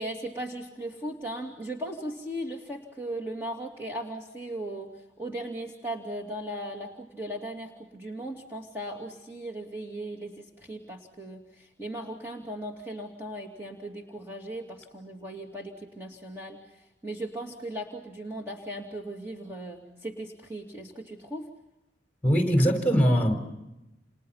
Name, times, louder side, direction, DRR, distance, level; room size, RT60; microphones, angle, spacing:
voice 1, 0.0-21.5, right 1 dB, 15° right, 0 dB, 2.7 m, -37 dB
voice 2, 22.2-23.3, equal, 10° left, 5 dB, 4.4 m, -21 dB
29.5 x 29.0 x 5.8 m, 0.94 s
head